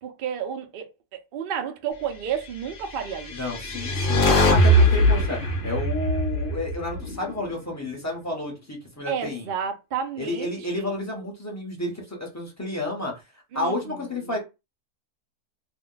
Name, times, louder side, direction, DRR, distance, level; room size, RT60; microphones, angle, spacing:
voice 1, 0.0-0.9 1.3-3.3 9.1-10.9 13.5-14.4, right 8 dB, 85° right, 0.4 m, -31 dB
sound 1, 3.1-7.5, equal, 50° left, 0.7 m, -21 dB
voice 2, 3.3-9.5 10.2-13.2 13.5-14.4, left 1 dB, 15° left, 0.7 m, -31 dB
2.6 x 2.2 x 3.8 m
omnidirectional pair, 1.7 m